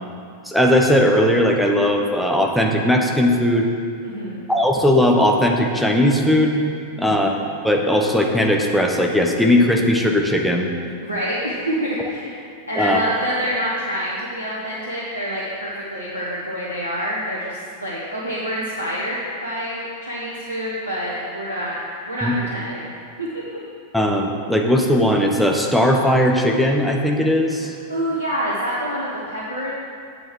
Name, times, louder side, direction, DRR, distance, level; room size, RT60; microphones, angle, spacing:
voice 1, 0.4-3.7 4.5-6.6 7.0-7.3 7.6-10.7 12.8-13.0 22.2-22.4 23.9-27.7, left 1 dB, ahead, 0 dB, 1.1 m, -18 dB
voice 2, 4.0-4.5 6.9-7.3 11.0-21.8 22.0-22.9 23.2-23.4 27.6-29.7, equal, 85° right, -7 dB, 1.4 m, -27 dB
7.8 x 7.7 x 6.1 m, 2.4 s
figure-of-eight pair, 90°, 0 cm